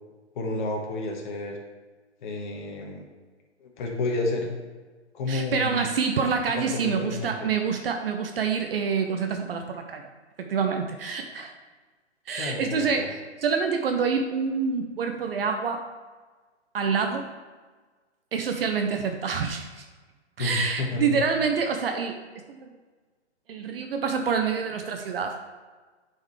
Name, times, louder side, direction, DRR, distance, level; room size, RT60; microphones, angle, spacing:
voice 1, 0.3-1.6 2.2-3.0 3.6-4.5 5.1-5.9 6.6-7.5 12.4-13.1 20.4-21.2, left 2 dB, 45° left, 1 dB, 1.2 m, -30 dB
voice 2, 5.3-10.0 10.4-11.5 12.3-13.2 13.4-15.8 16.7-17.2 18.3-19.9 20.4-22.2 23.5-25.4, right 5 dB, 55° right, 4 dB, 0.7 m, -27 dB
9.1 x 4.5 x 3.2 m, 1.4 s
hypercardioid pair, 135°, 35 cm